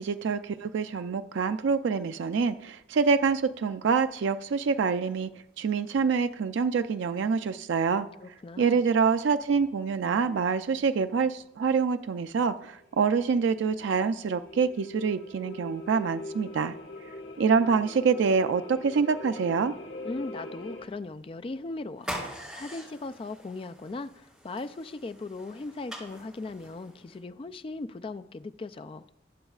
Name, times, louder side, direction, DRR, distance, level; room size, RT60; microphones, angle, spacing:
voice 1, 0.0-5.3 5.6-8.1 8.6-16.7 17.4-19.7, right 5 dB, 90° right, 0.4 m, -26 dB
voice 2, 8.2-8.8 20.0-29.0, left 3 dB, 30° left, 0.3 m, -38 dB
sound 1, 12.8-20.9, left 2 dB, 85° left, 1.9 m, -42 dB
sound 2, 22.0-27.2, equal, 5° right, 4.2 m, -43 dB
20.0 x 7.9 x 2.4 m
head